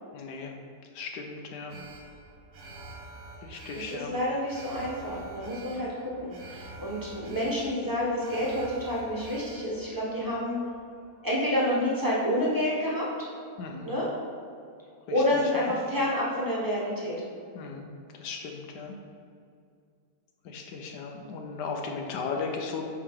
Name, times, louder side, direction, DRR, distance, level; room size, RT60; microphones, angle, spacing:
voice 1, 0.1-0.5 0.9-1.9 3.4-4.1 13.6-13.9 15.1-15.2 15.6-15.7 17.5-17.9 18.2-19.0 20.4-22.8, left 5 dB, 80° left, 2 dB, 1.4 m, -36 dB
Alarm, 1.7-12.0 12.3-12.4, right 2 dB, 55° right, 0.9 m, -47 dB
voice 2, 3.9-5.9 6.2-10.6 11.2-13.3 13.8-14.1 15.1-17.1, left 1 dB, 15° right, -6 dB, 1.0 m, -28 dB
6.4 x 4.7 x 3.7 m, 2.4 s
omnidirectional pair, 1.8 m